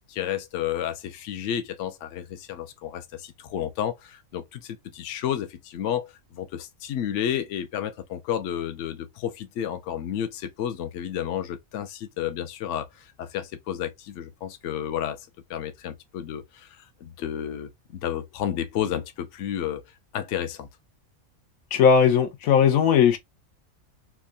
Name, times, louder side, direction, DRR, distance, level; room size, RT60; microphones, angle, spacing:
voice 1, 0.1-19.8 20.1-20.7, left 10 dB, 65° left, 0.9 m, -31 dB
voice 2, 21.7-23.2, left 7 dB, 90° left, 1.1 m, -18 dB
3.6 x 2.2 x 2.3 m
omnidirectional pair, 1.4 m